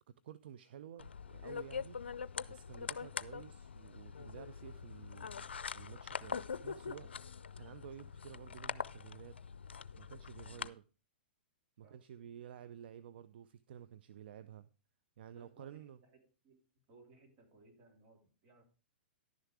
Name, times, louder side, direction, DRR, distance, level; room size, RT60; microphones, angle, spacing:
voice 1, 0.2-2.0 2.5-5.4 5.7-7.1 7.6-9.4 9.9-10.8 11.8-14.7 15.2-16.0, right 9 dB, 65° right, 0.5 m, -52 dB
sound 1, 1.0-10.7, left 6 dB, 90° left, 0.4 m, -44 dB
voice 2, 10.5-10.8 11.8-12.0 15.4-16.6 16.9-18.6, right 2 dB, 40° right, 2.9 m, -64 dB
11.0 x 6.7 x 4.7 m
hypercardioid pair, 120°, 6 cm